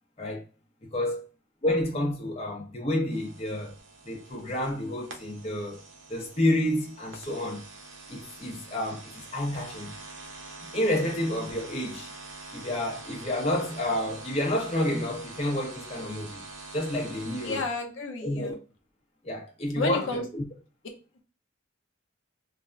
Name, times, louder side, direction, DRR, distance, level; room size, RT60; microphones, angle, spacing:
voice 1, 0.8-1.3 1.6-3.7 4.0-5.8 6.1-7.6 8.1-9.9 10.7-12.1 12.5-16.4 16.7-17.6 18.2-18.6 19.2-20.4, left 1 dB, 30° left, 0.7 m, -29 dB
sound 1, 3.1-17.6, right 3 dB, 85° right, 0.7 m, -45 dB
voice 2, 17.4-18.6 19.8-20.2, left 3 dB, 75° left, 0.6 m, -31 dB
3.2 x 2.0 x 2.4 m
head